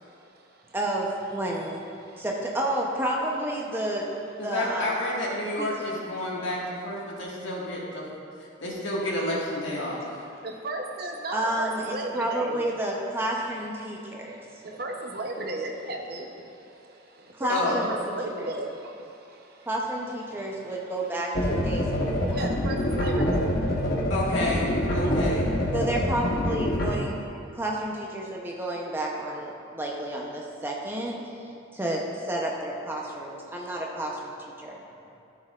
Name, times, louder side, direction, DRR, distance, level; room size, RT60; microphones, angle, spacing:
voice 1, 0.7-1.8 2.2-4.1 4.4-4.9 5.6-5.7 11.3-14.4 17.3-17.9 18.4-18.5 19.7-21.9 22.2-22.5 25.7-27.2 27.6-34.8, right 1 dB, 10° right, -2 dB, 0.7 m, -30 dB
voice 2, 4.4-8.1 8.6-10.0 17.5-17.8 24.1-25.5, left 1 dB, 70° left, -5 dB, 1.7 m, -30 dB
voice 3, 10.4-12.6 14.1-19.7 20.3-20.5 22.1-24.1 25.0-25.1, right 1 dB, 50° right, 2 dB, 0.7 m, -36 dB
sound 1, 21.4-26.9, equal, 45° left, 0.9 m, -26 dB
13.5 x 6.6 x 2.4 m, 2.7 s
head